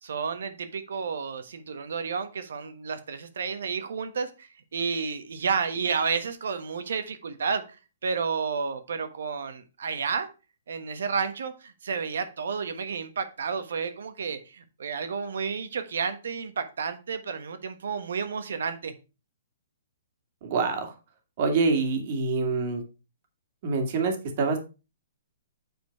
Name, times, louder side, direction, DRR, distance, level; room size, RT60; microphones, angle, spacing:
voice 1, 0.0-7.8 8.0-10.3 10.7-18.9, right 5 dB, 75° right, 1.3 m, -31 dB
voice 2, 20.4-20.9 21.4-22.8 23.6-24.6, right 4 dB, 50° right, 2.1 m, -26 dB
8.2 x 4.5 x 4.5 m
hypercardioid pair, 140°, 0 cm